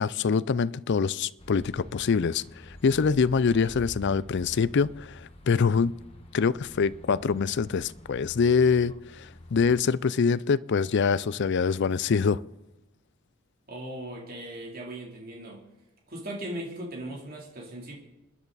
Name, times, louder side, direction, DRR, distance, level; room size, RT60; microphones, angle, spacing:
voice 1, 0.0-2.4 2.8-5.9 6.3-12.4, left 5 dB, 55° left, 0.4 m, -24 dB
sound 1, 1.4-9.8, left 1 dB, 30° left, 1.5 m, -47 dB
voice 2, 13.7-15.6 16.1-17.9, right 1 dB, 45° right, 3.3 m, -38 dB
27.5 x 10.5 x 4.1 m
head